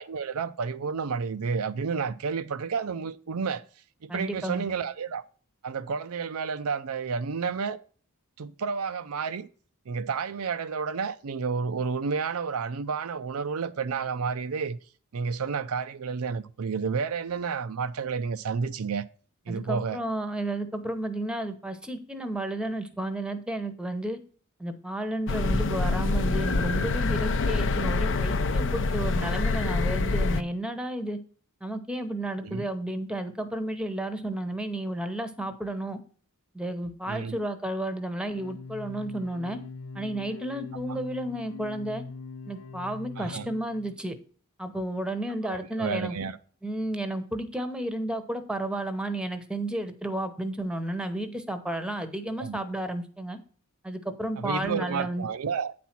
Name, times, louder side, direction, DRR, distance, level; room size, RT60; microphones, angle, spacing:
voice 1, 0.0-3.6 4.0-5.2 5.6-7.8 8.4-9.5 9.9-14.8 15.1-19.0 19.5-20.0 25.4-25.6 32.4-32.6 37.1-37.4 40.9-41.0 43.2-43.5 45.4-46.4 52.4-52.6 54.4-55.7, right 5 dB, 75° right, 0.5 m, -31 dB
voice 2, 4.1-4.6 19.5-24.2 24.6-31.2 31.6-36.0 36.5-39.6 39.9-42.0 42.5-44.2 44.6-46.2 46.6-53.4 53.8-55.2, right 1 dB, 5° right, 0.9 m, -32 dB
sound 1, 25.3-30.4, left 3 dB, 60° left, 0.6 m, -26 dB
sound 2, 38.3-44.0, left 4 dB, 85° left, 1.0 m, -42 dB
9.3 x 4.2 x 5.9 m
head